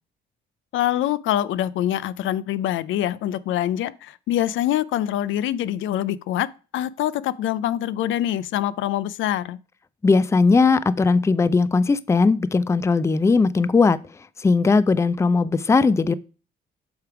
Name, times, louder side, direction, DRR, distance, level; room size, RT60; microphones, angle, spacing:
voice 1, 0.7-6.5 6.7-9.6, left 12 dB, 75° left, 0.4 m, -24 dB
voice 2, 10.0-14.0 14.4-16.1, left 4 dB, 15° left, 0.4 m, -18 dB
7.9 x 3.5 x 4.7 m
cardioid pair, 90°, 20 cm